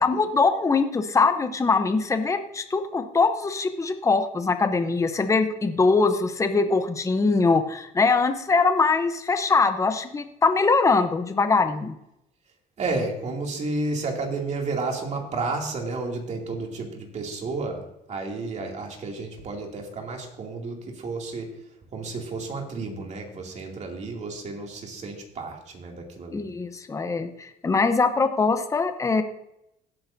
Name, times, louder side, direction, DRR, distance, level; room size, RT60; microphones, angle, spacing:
voice 1, 0.0-11.9 26.3-29.2, left 4 dB, 20° left, 8 dB, 0.8 m, -22 dB
voice 2, 12.8-21.5 21.9-26.5, right 3 dB, 45° right, 1 dB, 2.5 m, -32 dB
16.5 x 8.7 x 2.7 m, 0.82 s
cardioid pair, 110°, 17 cm